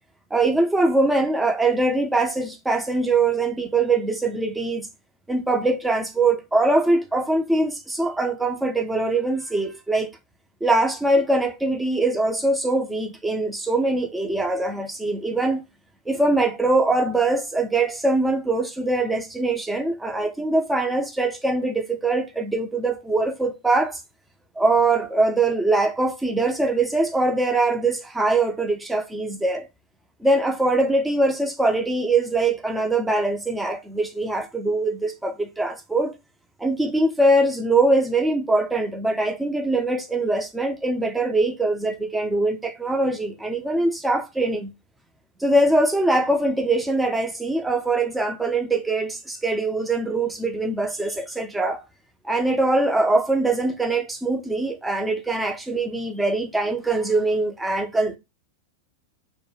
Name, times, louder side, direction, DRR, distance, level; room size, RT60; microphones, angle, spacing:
voice 1, 0.3-4.9 5.3-10.1 10.6-15.6 16.1-24.0 24.6-29.7 30.2-36.1 36.6-44.7 45.4-51.8 52.2-58.2, right 2 dB, 5° right, 0.4 m, -22 dB
2.1 x 2.1 x 3.2 m
figure-of-eight pair, 90°, 0 cm